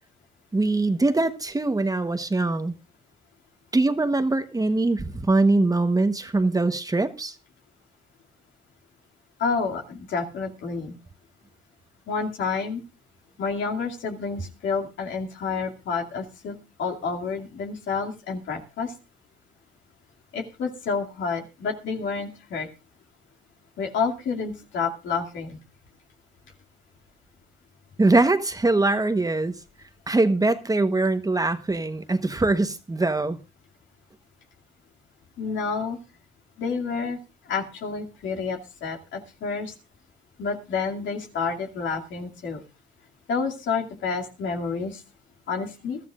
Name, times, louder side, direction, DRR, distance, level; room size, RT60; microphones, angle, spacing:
voice 1, 0.5-2.7 3.7-7.3 28.0-29.5 30.1-33.4, right 2 dB, 20° right, 1.1 m, -22 dB
voice 2, 9.4-11.0 12.1-12.8 13.4-18.9 20.3-22.7 23.8-25.6 35.4-36.0 36.6-37.2 37.5-39.7 40.4-42.6 43.3-45.0 45.5-46.0, left 5 dB, 70° left, 2.5 m, -29 dB
22.0 x 13.0 x 2.5 m
cardioid pair, 90°, 20 cm